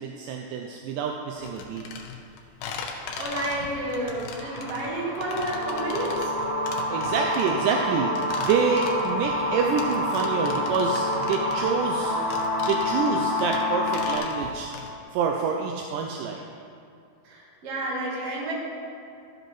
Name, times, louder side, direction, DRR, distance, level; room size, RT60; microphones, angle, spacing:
voice 1, 0.0-1.8 6.9-12.2 12.7-14.7 15.1-16.4, right 5 dB, 80° right, 2 dB, 1.9 m, -27 dB
sound 1, 1.4-14.9, left 5 dB, 75° left, 2.0 m, -38 dB
voice 2, 3.2-6.3 17.2-18.5, right 1 dB, 50° right, -4 dB, 2.3 m, -30 dB
sound 2, 4.3-14.2, left 1 dB, 15° right, 1.4 m, -28 dB
13.0 x 8.1 x 3.1 m, 2.5 s
omnidirectional pair, 4.3 m